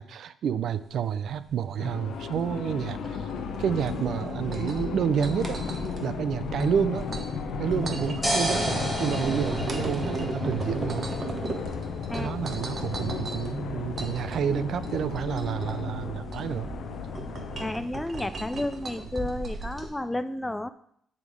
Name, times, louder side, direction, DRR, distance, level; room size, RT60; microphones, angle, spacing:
voice 1, 0.0-3.3 3.6-5.6 6.0-7.1 7.6-8.7 9.0-11.1 12.1-16.7, right 8 dB, 65° right, 15 dB, 0.4 m, -29 dB
sound 1, 0.6-19.9, right 4 dB, 45° right, 1.0 m, -38 dB
sound 2, 1.8-17.7, left 6 dB, 75° left, 0.7 m, -35 dB
sound 3, 7.7-19.9, equal, 10° right, 2.2 m, -36 dB
voice 2, 17.6-20.7, left 1 dB, 10° left, 12 dB, 0.3 m, -31 dB
9.6 x 3.6 x 4.7 m, 0.69 s
cardioid pair, 90°, 0 cm